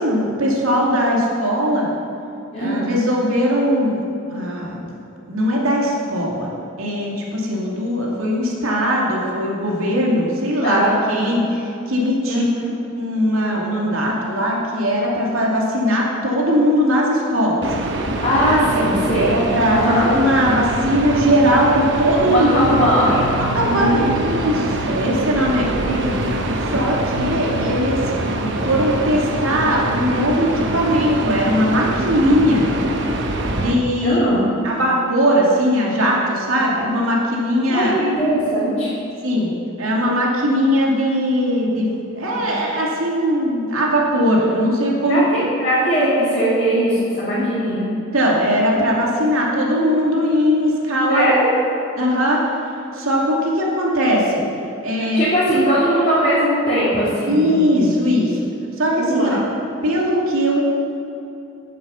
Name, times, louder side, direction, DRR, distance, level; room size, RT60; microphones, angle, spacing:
voice 1, 0.0-1.9 2.6-4.0 4.3-4.8 5.3-6.5 6.8-12.4 13.0-17.6 18.7-18.8 19.1-22.6 23.5-25.7 26.7-28.0 28.4-32.6 33.5-34.2 34.6-37.9 39.2-39.5 39.8-45.2 47.4-47.5 48.1-51.3 52.0-52.4 52.9-54.5 54.8-55.3 57.3-58.4 58.8-59.4 59.8-60.6, equal, 90° right, -3 dB, 2.5 m, -19 dB
voice 2, 2.5-2.9 10.6-11.2 12.3-12.7 18.2-19.4 19.7-20.1 22.2-24.1 25.8-26.2 34.0-34.4 37.7-38.9 42.2-42.5 45.1-45.2 45.6-47.8 51.1-51.5 55.1-57.9 59.0-59.4, equal, 35° left, -12 dB, 3.3 m, -20 dB
sound 1, 17.6-33.7, right 1 dB, 60° right, 1.0 m, -24 dB
9.3 x 9.3 x 7.1 m, 2.8 s
head